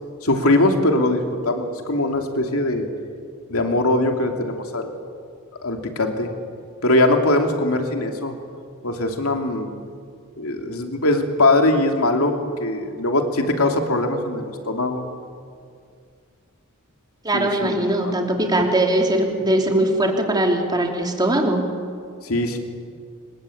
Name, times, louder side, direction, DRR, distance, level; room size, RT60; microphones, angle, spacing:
voice 1, 0.2-2.9 3.5-4.9 5.6-6.3 6.8-8.3 8.8-9.7 10.4-15.0 17.3-18.2 22.2-22.6, left 2 dB, 70° left, 4 dB, 2.9 m, -21 dB
voice 2, 17.2-21.7, right 1 dB, 20° right, 2 dB, 3.1 m, -20 dB
26.5 x 21.5 x 8.8 m, 2.2 s
head